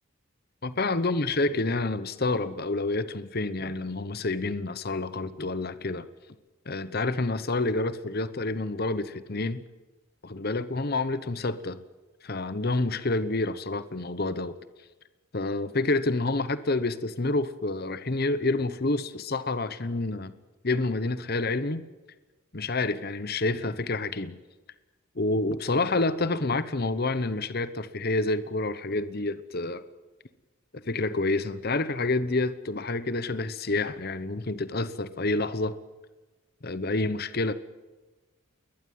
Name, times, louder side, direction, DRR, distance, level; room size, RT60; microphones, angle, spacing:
voice 1, 0.6-6.1 6.7-9.6 10.2-11.8 12.2-14.6 15.3-20.3 20.6-21.8 22.5-24.4 25.2-29.8 30.7-35.8 36.6-37.5, left 2 dB, 45° left, 14 dB, 1.0 m, -28 dB
21.0 x 20.5 x 9.4 m, 1.2 s
head